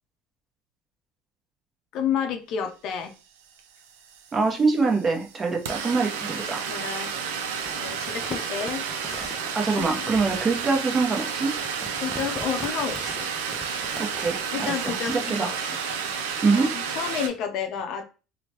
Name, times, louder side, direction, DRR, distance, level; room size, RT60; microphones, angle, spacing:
voice 1, 1.9-3.1 6.7-7.1 7.8-9.5 9.7-10.1 12.0-13.3 14.5-15.8 16.5-18.0, left 8 dB, 60° left, 5 dB, 0.5 m, -31 dB
sound 1, 3.6-3.7 3.9-17.3, right 6 dB, 90° right, 0.4 m, -31 dB
voice 2, 4.3-6.6 9.5-11.5 13.9-15.5 16.4-16.7, right 4 dB, 30° right, 1 dB, 0.8 m, -24 dB
Crumpling crinkling, 7.6-14.4, right 1 dB, 10° right, 0.3 m, -42 dB
2.9 x 2.1 x 2.8 m, 0.33 s
supercardioid pair, 90°, 0 cm